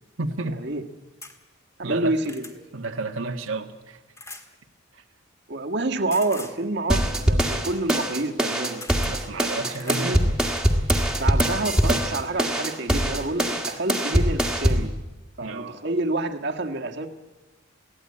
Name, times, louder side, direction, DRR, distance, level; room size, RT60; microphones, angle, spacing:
voice 1, 0.2-0.6 1.8-2.1 2.7-4.0 4.9-5.0 9.0-10.4 15.4-15.8, right 3 dB, 75° right, 4 dB, 1.5 m, -31 dB
sound 1, 1.2-1.4 1.9-2.6 4.2-4.5 6.1-6.6 8.3-8.4 8.8-9.2 9.7-10.1 10.6-11.1 12.1-12.2 12.6-12.7, left 2 dB, 15° left, 1.7 m, -42 dB
voice 2, 1.8-2.6 5.5-8.8 9.8-10.2 11.2-15.0 15.4-17.1, right 2 dB, 55° right, 4 dB, 1.7 m, -28 dB
sound 2, 6.9-14.9, right 1 dB, 5° right, 1.7 m, -23 dB
22.5 x 16.5 x 9.8 m, 1.2 s
head